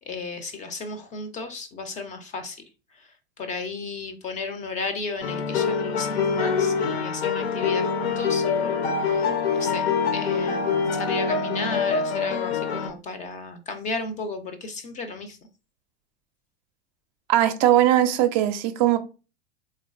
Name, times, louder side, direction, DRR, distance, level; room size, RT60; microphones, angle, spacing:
voice 1, 0.1-2.6 2.9-15.4, left 3 dB, 25° left, 0.4 m, -34 dB
sound 1, 5.2-12.9, left 5 dB, 65° left, 0.7 m, -25 dB
voice 2, 17.3-19.0, right 12 dB, 45° right, 0.5 m, -19 dB
3.6 x 3.2 x 2.4 m
figure-of-eight pair, 85°, 33 cm